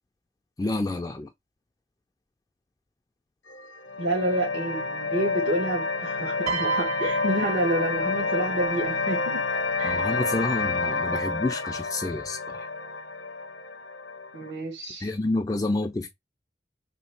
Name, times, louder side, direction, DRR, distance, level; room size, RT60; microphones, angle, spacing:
voice 1, 0.6-1.3 9.8-12.7 15.0-16.1, left 2 dB, 20° left, 0.3 m, -29 dB
sound 1, 3.5-14.5, left 3 dB, 80° left, 0.7 m, -29 dB
voice 2, 4.0-10.0 14.3-15.1, right 1 dB, 75° right, 1.3 m, -29 dB
Piano, 6.5-8.8 9.9-10.1, right 4 dB, 35° right, 0.8 m, -32 dB
3.2 x 2.9 x 4.4 m
head